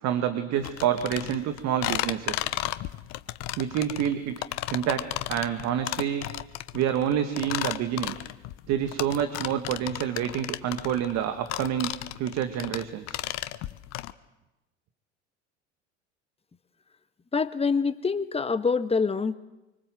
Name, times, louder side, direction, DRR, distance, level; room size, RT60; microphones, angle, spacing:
voice 1, 0.0-2.5 3.6-4.4 4.7-5.0 5.3-6.2 6.7-8.1 8.7-11.9 12.2-13.2, right 10 dB, 50° right, 8 dB, 2.2 m, -28 dB
sound 1, 0.6-14.1, left 16 dB, 50° left, 1.2 m, -33 dB
voice 2, 17.3-19.3, left 5 dB, 15° left, 11 dB, 1.6 m, -25 dB
26.0 x 24.5 x 7.9 m, 1.0 s
hypercardioid pair, 80°, 35 cm